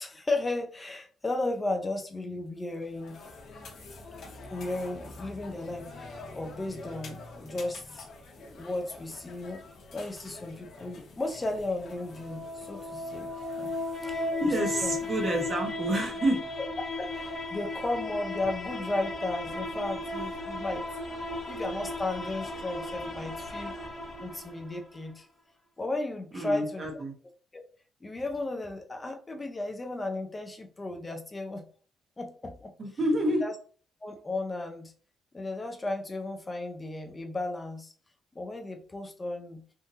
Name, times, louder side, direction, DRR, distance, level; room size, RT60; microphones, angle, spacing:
voice 1, 0.0-3.2 4.5-8.1 8.4-9.6 9.9-13.3 13.6-13.7 14.0-15.0 16.6-16.7 17.0-20.8 21.4-23.7 24.2-25.3 25.8-26.9 27.5-27.6 28.0-31.7 32.2-32.7 33.4-33.5 34.0-34.9 35.3-37.9 38.3-39.6, left 2 dB, 25° left, 4 dB, 0.5 m, -34 dB
sound 1, 2.6-15.5, left 3 dB, 65° left, 1.1 m, -47 dB
sound 2, 12.1-25.0, left 2 dB, 40° left, 1.5 m, -36 dB
voice 2, 14.4-16.4 26.3-27.1 32.8-33.4, right 1 dB, 40° right, 1 dB, 1.2 m, -28 dB
3.6 x 2.6 x 2.7 m, 0.42 s
cardioid pair, 90°, 0 cm